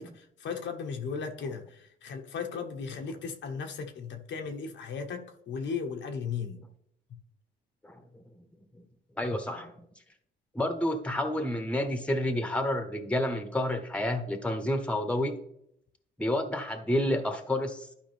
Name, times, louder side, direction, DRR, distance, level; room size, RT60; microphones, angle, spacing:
voice 1, 0.0-6.6, left 5 dB, 70° left, 1.2 m, -36 dB
voice 2, 9.2-9.8 10.5-15.4 16.2-17.9, left 1 dB, 5° left, 1.3 m, -29 dB
12.0 x 5.0 x 3.5 m
cardioid pair, 90°, 20 cm